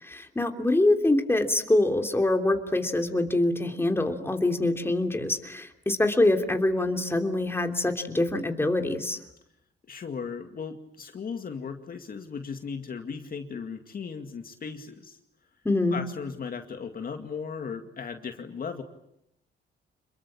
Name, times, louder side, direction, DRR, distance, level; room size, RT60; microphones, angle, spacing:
voice 1, 0.0-9.2 15.6-16.0, left 2 dB, 10° left, 4 dB, 3.2 m, -25 dB
voice 2, 9.9-15.2 15.9-18.8, left 6 dB, 45° left, 5 dB, 2.2 m, -37 dB
27.5 x 22.0 x 8.8 m, 0.80 s
cardioid pair, 90°, 20 cm